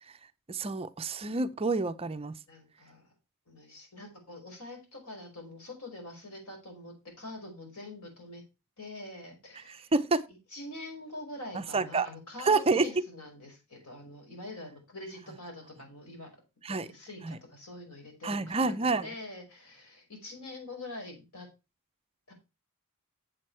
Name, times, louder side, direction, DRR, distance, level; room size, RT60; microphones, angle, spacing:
voice 1, 0.5-2.3 9.7-10.2 11.5-12.1 12.4-12.9 16.6-16.9 17.2-17.4 18.2-19.1, right 3 dB, 25° right, 0.5 m, -28 dB
voice 2, 2.5-3.1 3.5-8.4 8.8-9.9 10.3-16.4 16.7-21.5 22.3-22.4, left 2 dB, 80° left, 4.7 m, -45 dB
8.0 x 7.5 x 4.4 m
head